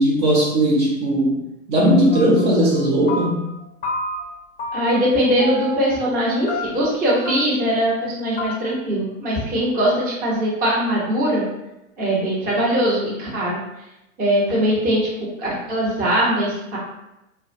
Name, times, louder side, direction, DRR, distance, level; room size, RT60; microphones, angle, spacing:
voice 1, 0.0-1.4 1.7-3.4, equal, 55° right, -4 dB, 0.8 m, -17 dB
sound 1, 2.1-2.5 2.7-3.5 3.8-4.3 4.6-5.1 5.4-5.9 6.5-6.9 7.3-7.4 7.6-7.7 8.0-8.1 8.4-8.5, left 1 dB, 20° left, 0.5 m, -29 dB
voice 2, 4.7-11.5 12.0-13.6 14.2-15.0 15.4-16.8, equal, 20° right, -6 dB, 0.8 m, -21 dB
2.2 x 2.1 x 2.6 m, 0.91 s
hypercardioid pair, 105°, 40 cm